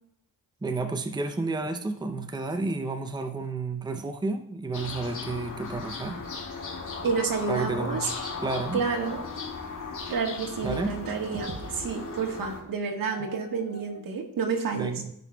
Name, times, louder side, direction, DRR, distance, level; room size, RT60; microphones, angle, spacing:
voice 1, 0.6-6.2 7.5-8.0 8.4-8.8 10.6-10.9 14.8-15.1, right 3 dB, 10° right, 5 dB, 0.7 m, -31 dB
sound 1, 4.7-12.6, left 4 dB, 60° left, 2.2 m, -37 dB
voice 2, 7.0-8.1 8.7-9.2 10.1-15.0, right 5 dB, 70° right, 3 dB, 1.6 m, -30 dB
sound 2, 8.0-10.1 10.6-14.0, right 2 dB, 40° right, 1.1 m, -42 dB
15.5 x 5.5 x 2.3 m, 0.74 s
cardioid pair, 85°, 35 cm